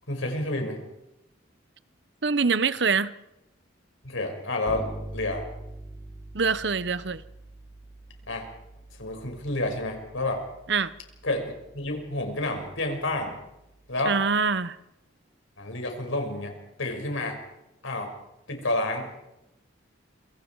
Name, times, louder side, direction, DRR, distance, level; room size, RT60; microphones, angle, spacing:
voice 1, 0.1-0.8 4.0-5.4 8.3-8.5 9.0-10.4 11.2-13.4 13.9-14.2 15.6-16.5 16.8-17.4 17.8-18.1 18.5-19.1, left 2 dB, 90° left, 3 dB, 5.8 m, -29 dB
voice 2, 2.2-3.1 6.3-7.2 10.7-10.9 14.1-14.8, right 5 dB, 60° right, 15 dB, 0.9 m, -24 dB
Bass guitar, 4.7-14.3, right 1 dB, 10° right, 3.5 m, -45 dB
27.0 x 24.5 x 4.7 m, 0.90 s
head